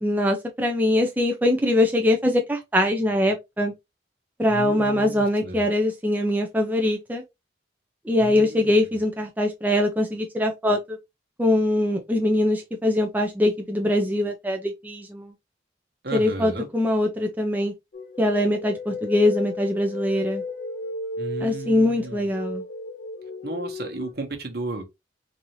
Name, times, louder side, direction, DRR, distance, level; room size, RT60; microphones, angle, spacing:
voice 1, 0.0-3.7 4.4-7.2 8.1-11.0 11.4-15.3 16.1-17.7 18.2-20.4 21.4-22.6, left 1 dB, 10° right, 0.5 m, -22 dB
voice 2, 4.5-5.6 8.2-9.0 16.0-16.7 21.2-22.3 23.4-24.8, right 2 dB, 60° right, 1.1 m, -34 dB
sound 1, 17.9-24.1, left 2 dB, 50° left, 0.5 m, -34 dB
4.1 x 2.7 x 3.0 m
head